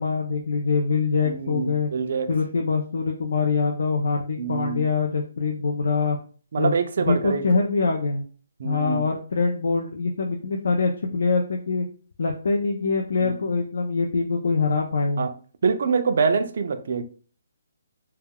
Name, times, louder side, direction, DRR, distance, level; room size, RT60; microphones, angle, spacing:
voice 1, 0.0-1.9 2.3-6.2 6.6-8.3 8.6-11.9 12.2-15.3, left 4 dB, 60° left, 0.4 m, -24 dB
voice 2, 1.2-2.3 4.4-4.8 6.5-7.4 8.6-9.1 13.2-13.3 15.2-15.3 15.6-17.0, right 5 dB, 45° right, 0.3 m, -25 dB
2.2 x 2.2 x 3.4 m
hypercardioid pair, 170°, 0 cm